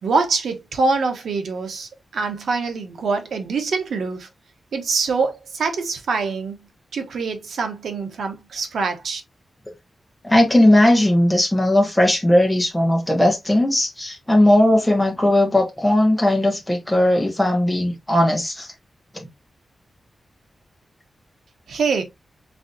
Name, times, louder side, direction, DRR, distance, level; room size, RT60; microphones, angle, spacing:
voice 1, 0.0-4.3 4.7-6.6 6.9-9.2 21.7-22.0, right 4 dB, 90° right, 1.1 m, -24 dB
voice 2, 10.2-18.7 19.1-19.3, left 1 dB, 5° left, 1.4 m, -17 dB
4.6 x 3.7 x 2.7 m
wide cardioid pair, 170°, 0 cm